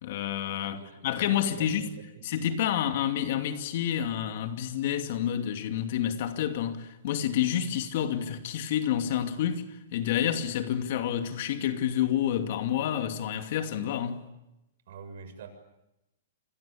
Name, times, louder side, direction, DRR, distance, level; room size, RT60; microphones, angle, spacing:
voice 1, 0.0-1.9 2.2-14.3, left 10 dB, 50° left, 2.7 m, -29 dB
voice 2, 0.7-2.5 14.9-15.5, right 5 dB, 60° right, 7.1 m, -46 dB
28.5 x 22.5 x 8.7 m
hypercardioid pair, 160°, 0 cm